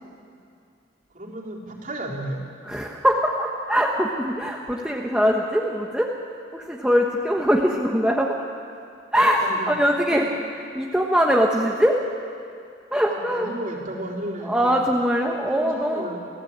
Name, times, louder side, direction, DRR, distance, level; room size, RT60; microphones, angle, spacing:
voice 1, 1.1-2.4 9.4-10.2 13.1-14.8 15.5-16.2, right 1 dB, 45° right, -2 dB, 3.9 m, -33 dB
voice 2, 2.7-6.1 6.5-8.3 9.1-10.3 10.7-12.0 12.9-13.5 14.4-16.0, equal, 5° right, -1 dB, 1.3 m, -22 dB
29.5 x 15.5 x 8.8 m, 2.4 s
head